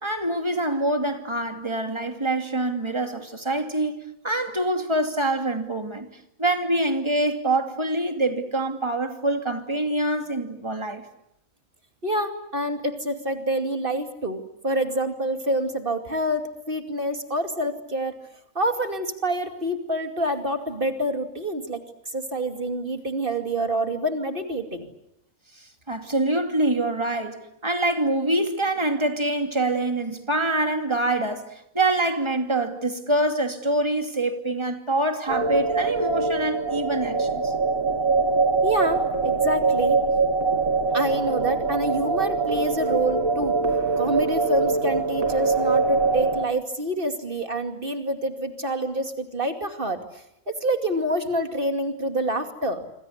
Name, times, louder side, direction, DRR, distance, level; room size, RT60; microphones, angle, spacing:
voice 1, 0.0-6.1 6.4-11.0 25.5-37.5, right 2 dB, 20° right, 2.7 m, -25 dB
voice 2, 12.0-18.1 18.5-21.8 22.1-24.9 38.6-40.0 40.9-43.6 44.0-50.0 50.5-52.9, right 1 dB, 40° right, 2.7 m, -27 dB
sound 1, 35.3-46.5, right 4 dB, 90° right, 2.9 m, -23 dB
26.5 x 26.0 x 8.1 m
omnidirectional pair, 1.4 m